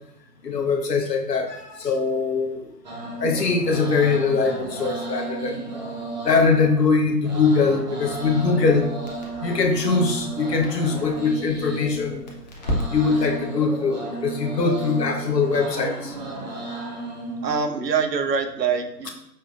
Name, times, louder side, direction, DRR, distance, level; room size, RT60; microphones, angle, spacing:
voice 1, 0.4-2.6 3.2-5.6 6.2-8.9 9.4-12.2 12.9-16.1, left 4 dB, 80° left, 3 dB, 0.8 m, -22 dB
sound 1, 2.8-17.7, right 2 dB, 30° right, 0.6 m, -34 dB
Crackle, 8.1-13.4, equal, 30° left, 0.6 m, -35 dB
voice 2, 17.4-19.1, right 5 dB, 85° right, 7 dB, 0.7 m, -24 dB
5.4 x 2.9 x 2.3 m, 0.76 s
figure-of-eight pair, 130°, 49 cm